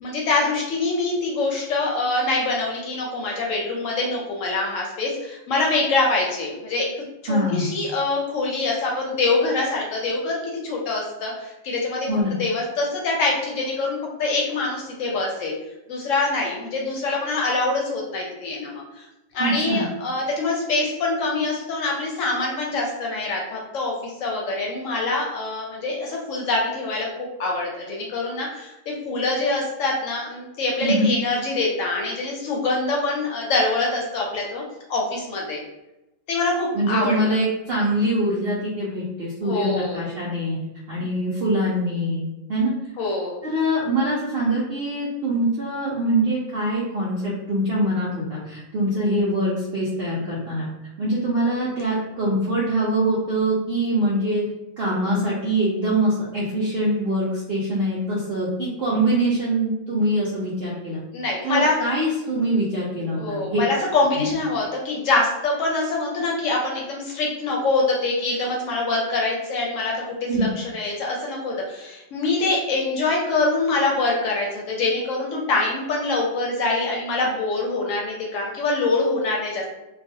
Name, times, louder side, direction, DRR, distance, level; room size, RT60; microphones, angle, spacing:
voice 1, 0.0-6.9 7.2-12.1 12.4-15.5 15.9-19.1 19.3-34.6 34.9-35.6 36.3-37.1 39.4-40.0 43.0-43.4 61.1-61.7 63.1-69.9 70.2-79.7, left 3 dB, 70° left, -2 dB, 0.8 m, -24 dB
voice 2, 7.3-7.7 12.1-12.4 19.4-19.9 30.8-31.1 36.7-40.6 40.9-42.7 43.4-50.7 51.0-54.4 54.8-61.0 61.4-63.6 64.2-64.3 70.3-70.5, right 1 dB, 70° right, -6 dB, 0.6 m, -23 dB
2.3 x 2.3 x 2.6 m, 0.97 s
omnidirectional pair, 1.6 m